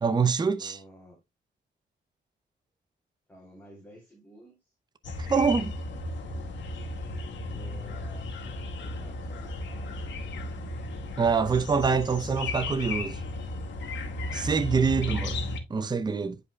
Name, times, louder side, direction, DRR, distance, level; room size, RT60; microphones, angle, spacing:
voice 1, 0.0-0.8 5.2-5.7 11.2-13.2 14.3-15.4 15.7-16.4, right 5 dB, 20° right, 0.6 m, -25 dB
voice 2, 0.5-1.2 3.3-4.7 7.5-10.7 14.3-14.5, right 1 dB, 10° left, 3.4 m, -53 dB
sound 1, 5.0-15.6, left 2 dB, 75° left, 1.8 m, -34 dB
10.5 x 5.2 x 2.3 m
cardioid pair, 130°, 19 cm